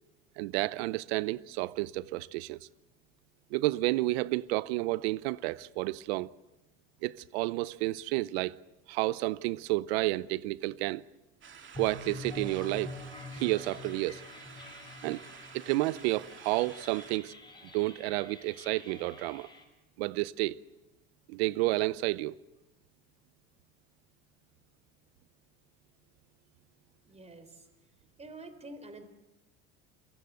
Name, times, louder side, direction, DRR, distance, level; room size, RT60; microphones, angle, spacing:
voice 1, 0.4-2.7 3.5-6.3 7.0-8.6 8.9-11.0 11.8-12.9 13.3-14.2 15.0-15.2 15.5-17.3 17.7-19.5 20.0-20.6 21.3-22.4, right 19 dB, 85° right, 0.7 m, -31 dB
sound 1, 11.4-17.2, right 7 dB, 40° right, 2.4 m, -51 dB
sound 2, 11.7-19.6, left 2 dB, 15° left, 5.5 m, -46 dB
voice 2, 27.1-27.7 28.2-29.1, right 2 dB, 20° right, 3.6 m, -47 dB
28.5 x 17.5 x 8.0 m
supercardioid pair, 95°, 31 cm